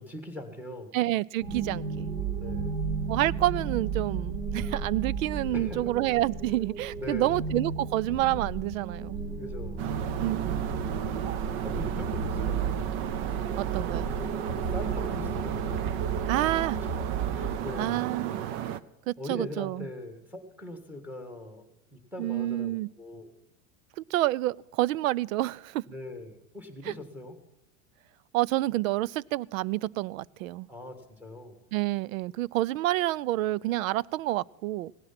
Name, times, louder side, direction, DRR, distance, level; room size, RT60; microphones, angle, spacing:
voice 1, 0.0-1.0 2.4-2.8 5.5-6.0 7.0-7.4 9.4-9.9 11.6-13.0 14.5-15.8 17.3-18.0 19.2-21.6 21.9-23.3 25.9-27.3 30.7-31.7, left 1 dB, 5° right, 1.8 m, -41 dB
voice 2, 0.9-2.1 3.1-9.2 10.2-10.6 13.6-14.1 16.3-16.8 17.8-18.4 19.1-19.9 22.2-22.9 24.1-25.8 26.9-27.0 28.3-30.7 31.7-34.9, right 16 dB, 80° right, 0.6 m, -28 dB
sound 1, 1.4-17.8, right 5 dB, 60° right, 7.7 m, -33 dB
sound 2, 9.8-18.8, right 10 dB, 30° right, 0.5 m, -34 dB
17.0 x 11.0 x 5.8 m
supercardioid pair, 155°, 40 cm